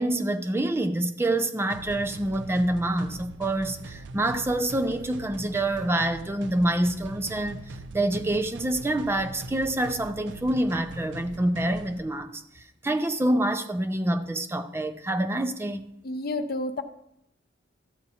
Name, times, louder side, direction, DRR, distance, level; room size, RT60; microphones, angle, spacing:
voice 1, 0.0-15.9, right 1 dB, 15° right, 0.4 m, -27 dB
sound 1, 1.7-12.0, right 2 dB, 80° right, 0.4 m, -42 dB
voice 2, 16.0-16.8, left 2 dB, 55° left, 0.6 m, -30 dB
13.0 x 8.1 x 2.8 m
head